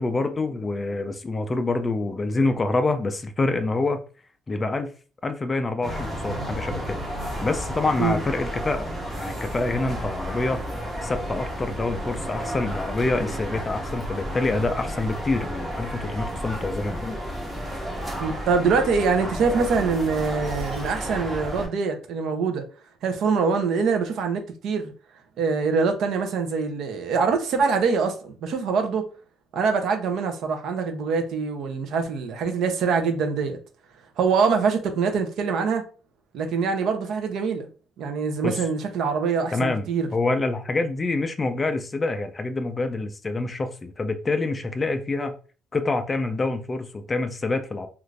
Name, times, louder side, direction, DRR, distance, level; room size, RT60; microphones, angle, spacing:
voice 1, 0.0-4.0 4.5-4.9 5.2-7.0 7.4-8.9 9.2-10.6 11.0-17.4 38.4-38.6 39.5-39.9 40.1-45.4 45.7-47.9, left 3 dB, 20° left, 0.3 m, -26 dB
sound 1, 5.8-21.7, equal, 20° right, 0.7 m, -32 dB
voice 2, 18.2-22.6 23.0-24.9 25.4-29.0 29.5-33.6 34.2-35.8 36.3-37.7 38.0-40.1, right 5 dB, 65° right, 0.6 m, -24 dB
2.4 x 2.4 x 3.2 m
cardioid pair, 155°, 0 cm